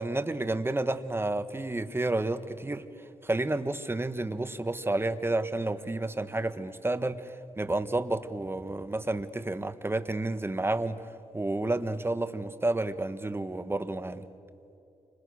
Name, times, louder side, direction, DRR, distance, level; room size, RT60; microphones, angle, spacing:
voice 1, 0.0-2.9 3.2-11.0 11.3-14.3, right 2 dB, 20° right, 11 dB, 1.4 m, -30 dB
30.0 x 26.5 x 6.4 m, 2.7 s
cardioid pair, 85°, 13 cm